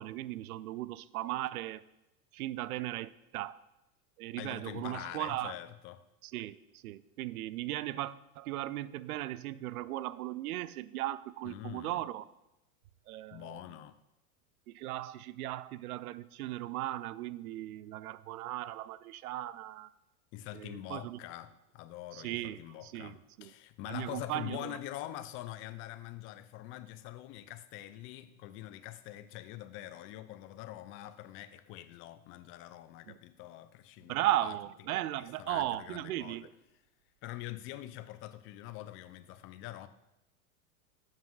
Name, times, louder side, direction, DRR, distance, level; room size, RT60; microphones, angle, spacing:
voice 1, 0.0-1.9 2.3-3.6 4.2-5.6 6.2-12.3 13.1-13.6 14.7-19.9 20.5-21.2 22.1-23.5 23.9-24.8 33.1-33.2 34.1-36.5, right 14 dB, 70° right, 0.5 m, -37 dB
voice 2, 4.4-6.0 11.4-12.0 13.3-14.0 20.3-34.6 35.2-36.5 37.2-39.9, left 14 dB, 30° left, 0.4 m, -45 dB
12.5 x 7.4 x 2.3 m
hypercardioid pair, 100°, 45 cm